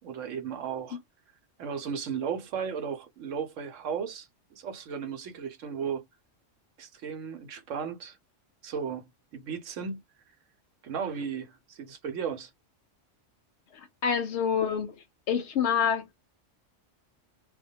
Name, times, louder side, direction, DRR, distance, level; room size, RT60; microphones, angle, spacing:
voice 1, 0.0-1.0 1.6-6.0 6.8-8.2 8.6-10.0 10.8-12.5, right 7 dB, 80° right, 1.0 m, -35 dB
voice 2, 14.0-14.9 15.3-16.1, left 7 dB, 70° left, 0.8 m, -26 dB
2.2 x 2.1 x 2.7 m
omnidirectional pair, 1.3 m